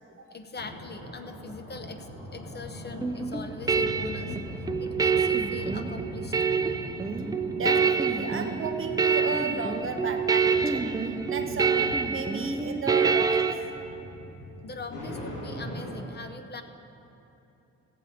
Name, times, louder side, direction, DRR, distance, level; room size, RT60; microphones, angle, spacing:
voice 1, 0.0-6.4 14.6-16.6, left 3 dB, 35° left, 8 dB, 0.7 m, -42 dB
sound 1, 0.6-16.0, equal, 85° left, 2.1 m, -41 dB
sound 2, 3.0-13.5, right 5 dB, 15° right, 0.4 m, -26 dB
voice 2, 7.5-13.5, right 4 dB, 45° right, 6 dB, 1.0 m, -34 dB
16.5 x 7.5 x 4.2 m, 2.9 s
cardioid pair, 90°, 30 cm